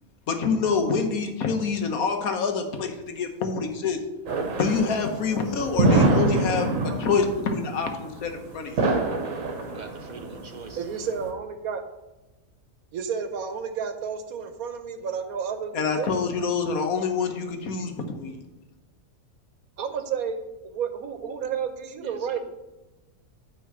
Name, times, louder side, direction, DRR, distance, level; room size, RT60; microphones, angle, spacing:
voice 1, 0.3-4.0 4.6-6.7 7.0-8.8 15.7-18.4, left 5 dB, 90° left, 5 dB, 1.5 m, -26 dB
sound 1, 4.3-11.3, right 2 dB, 70° right, 1.4 m, -25 dB
voice 2, 9.7-10.8 22.0-22.4, right 3 dB, 45° right, 6 dB, 0.6 m, -43 dB
voice 3, 10.8-11.8 12.9-16.1 19.8-22.4, right 7 dB, 90° right, 8 dB, 1.3 m, -31 dB
9.1 x 3.8 x 6.2 m, 1.1 s
omnidirectional pair, 1.5 m